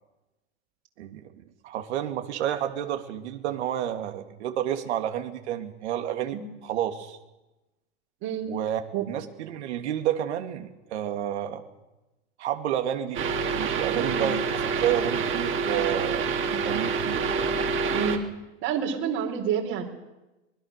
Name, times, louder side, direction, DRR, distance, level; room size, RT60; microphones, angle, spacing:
voice 1, 1.0-7.2 8.5-8.8 9.1-11.6 12.4-13.2 13.5-17.3, right 11 dB, 75° right, 6 dB, 2.8 m, -30 dB
voice 2, 8.2-8.5 8.9-9.1 13.9-14.3 17.9-18.2 18.6-19.8, right 7 dB, 60° right, 0 dB, 4.4 m, -28 dB
sound 1, 13.1-18.2, right 5 dB, 35° right, 2.9 m, -27 dB
24.5 x 21.0 x 6.8 m, 1.0 s
hypercardioid pair, 110°, 34 cm